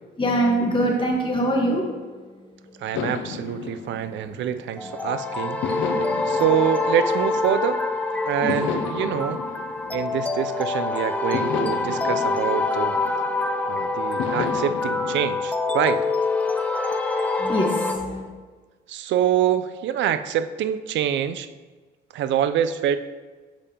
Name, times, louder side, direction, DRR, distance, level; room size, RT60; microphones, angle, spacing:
voice 1, 0.2-2.0 2.3-2.9 8.4-8.6 17.4-18.2, right 1 dB, 25° left, 0 dB, 1.3 m, -24 dB
voice 2, 2.8-5.6 6.2-7.9 8.3-9.4 9.9-13.0 13.7-16.1 18.9-21.5 22.1-23.0, right 10 dB, 70° right, 11 dB, 0.4 m, -25 dB
sound 1, 2.9-5.0 5.6-7.9 8.5-10.7 11.3-13.6 14.2-15.3, left 8 dB, 75° left, 0.4 m, -33 dB
sound 2, 4.8-17.9, left 3 dB, 5° left, 0.5 m, -25 dB
7.0 x 5.0 x 2.8 m, 1.4 s
cardioid pair, 90°, 20 cm